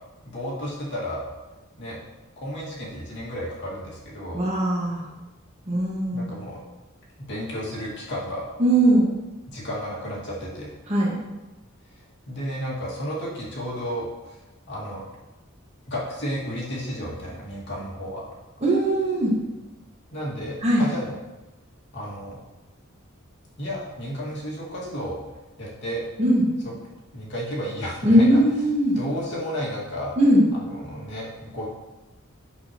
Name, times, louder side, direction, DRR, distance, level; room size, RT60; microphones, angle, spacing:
voice 1, 0.2-1.3 1.8-2.0 2.4-4.4 6.1-6.6 7.2-8.4 9.5-10.7 12.3-14.4 14.7-15.0 15.9-18.2 20.1-21.2 21.9-22.4 23.6-25.2 25.6-26.0 26.6-26.7 27.1-28.4 28.9-30.2 30.5-31.7, equal, 55° left, -6 dB, 2.2 m, -32 dB
voice 2, 4.3-5.0 5.7-6.3 8.6-9.1 10.9-11.1 18.6-19.3 20.6-20.8 26.2-26.5 28.0-29.0 30.2-30.4, right 1 dB, 30° right, -4 dB, 1.8 m, -19 dB
8.2 x 6.6 x 3.0 m, 1.1 s
head